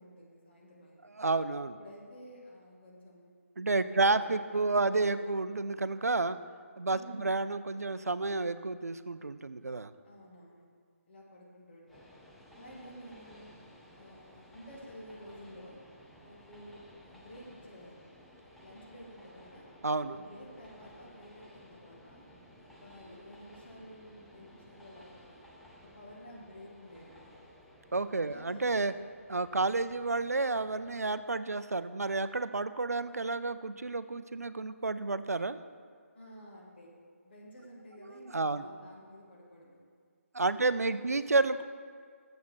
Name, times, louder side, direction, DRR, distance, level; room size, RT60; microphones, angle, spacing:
voice 1, 0.0-1.1 1.6-3.3 3.9-5.0 5.3-5.4 6.9-7.4 10.0-10.7 11.1-12.2 12.5-13.5 13.9-15.8 16.2-18.1 18.5-19.7 20.1-22.3 22.6-25.3 25.8-27.3 28.2-28.6 36.1-36.9 37.2-39.8 40.5-41.2, equal, 45° left, -2 dB, 1.8 m, -51 dB
voice 2, 1.2-1.8 3.6-6.4 6.8-9.9 19.8-20.2 27.9-28.9 29.3-35.6 38.1-38.7 40.3-41.6, right 3 dB, 90° right, 13 dB, 0.4 m, -30 dB
Train, 11.9-31.0, equal, ahead, 0.4 m, -56 dB
7.2 x 5.1 x 6.1 m, 2.1 s
figure-of-eight pair, 150°, 8 cm